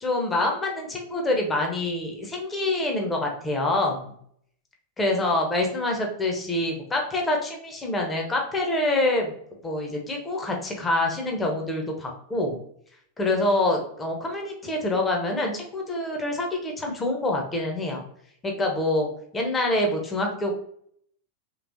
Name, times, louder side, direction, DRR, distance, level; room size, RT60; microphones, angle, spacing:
voice 1, 0.0-4.1 5.0-9.3 9.6-12.6 13.2-18.0 18.4-20.5, left 2 dB, 15° left, 1 dB, 0.7 m, -26 dB
3.2 x 3.0 x 2.6 m, 0.66 s
figure-of-eight pair, 90°, 0 cm